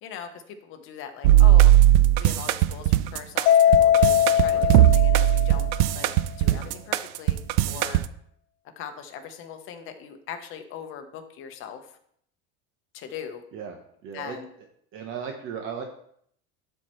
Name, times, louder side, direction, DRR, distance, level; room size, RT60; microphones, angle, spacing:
voice 1, 0.0-1.7 2.2-5.7 5.9-6.1 6.4-8.0 8.8-11.9 12.9-13.4 14.1-14.5, left 8 dB, 40° left, 6 dB, 0.9 m, -40 dB
sound 1, 1.2-8.1, right 14 dB, 75° right, 0.5 m, -18 dB
Mallet percussion, 3.5-5.9, left 10 dB, 60° left, 0.4 m, -20 dB
voice 2, 13.5-14.4 14.9-15.8, right 7 dB, 45° right, 3 dB, 0.8 m, -36 dB
12.0 x 4.5 x 3.1 m, 0.68 s
cardioid pair, 160°, 31 cm